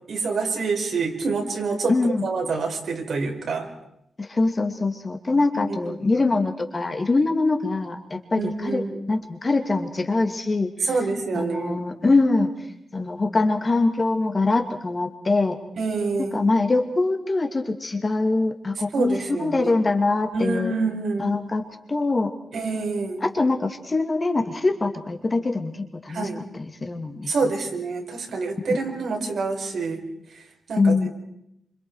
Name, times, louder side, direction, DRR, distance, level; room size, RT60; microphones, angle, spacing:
voice 1, 0.1-3.7 5.5-5.9 8.3-9.0 10.8-11.8 15.8-16.4 18.9-19.7 20.3-21.4 22.5-23.2 26.1-26.4 27.3-30.0 30.7-31.1, right 4 dB, 65° right, 2 dB, 5.1 m, -27 dB
voice 2, 1.9-2.2 4.2-8.8 9.1-10.7 11.3-12.5 12.9-15.6 16.3-20.7 21.2-21.6 21.9-22.3 23.2-26.3 26.8-27.3 30.8-31.1, left 3 dB, 30° left, 4 dB, 2.4 m, -23 dB
29.0 x 27.0 x 4.8 m, 0.77 s
wide cardioid pair, 140°, 0 cm